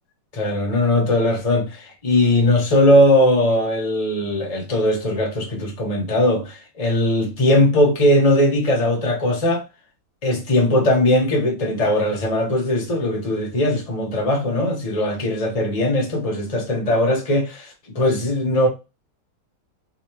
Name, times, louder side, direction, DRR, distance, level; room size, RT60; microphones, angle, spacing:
voice 1, 0.3-9.6 10.2-18.7, left 1 dB, 25° left, 0.8 m, -19 dB
3.8 x 3.2 x 3.0 m
omnidirectional pair, 2.4 m